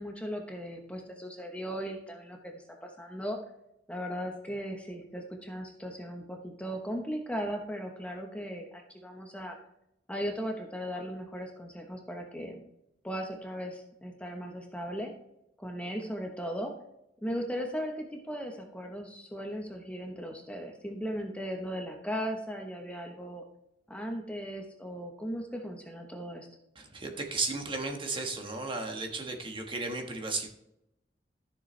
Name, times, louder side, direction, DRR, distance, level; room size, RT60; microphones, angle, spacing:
voice 1, 0.0-3.4 3.9-9.6 10.1-12.6 13.0-15.1 15.6-16.7 17.2-23.4 23.9-26.5, equal, 5° left, 2 dB, 1.0 m, -37 dB
voice 2, 26.8-30.5, right 3 dB, 30° right, 3 dB, 1.4 m, -34 dB
13.0 x 6.9 x 3.3 m, 0.82 s
head